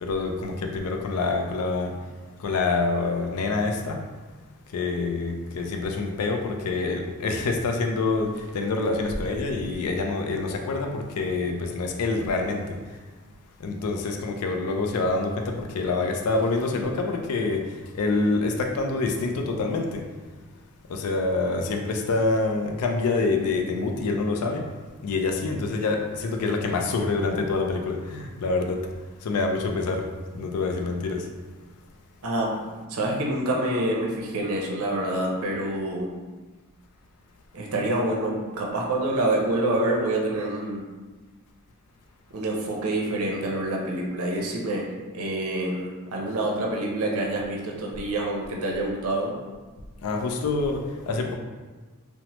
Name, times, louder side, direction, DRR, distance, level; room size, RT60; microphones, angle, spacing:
voice 1, 0.0-2.0 2.4-4.1 4.7-12.8 13.6-20.1 20.9-24.7 25.0-28.9 29.2-30.1 30.3-31.3 50.0-51.4, left 3 dB, 80° left, 3 dB, 0.4 m, -26 dB
voice 2, 32.2-32.6 32.9-36.1 37.5-40.9 42.3-44.9 45.1-49.3, right 1 dB, 70° right, -2 dB, 0.5 m, -27 dB
3.0 x 2.0 x 2.9 m, 1.3 s
head